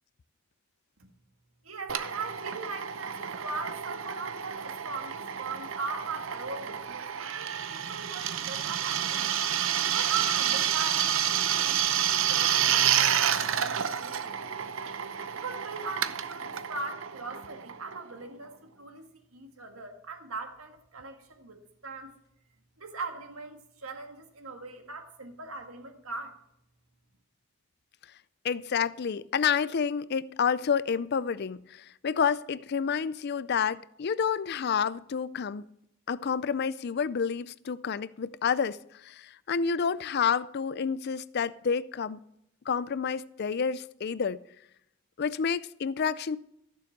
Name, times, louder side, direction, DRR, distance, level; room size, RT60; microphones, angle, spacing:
voice 1, 1.6-9.3 9.9-14.7 15.3-22.1 22.8-26.4, right 4 dB, 80° right, 2.0 m, -40 dB
Drill, 1.9-18.2, right 9 dB, 65° right, 0.7 m, -29 dB
voice 2, 28.4-35.6 36.1-42.2 42.7-44.4 45.2-46.4, left 6 dB, 50° left, 0.4 m, -29 dB
14.5 x 7.0 x 6.5 m
head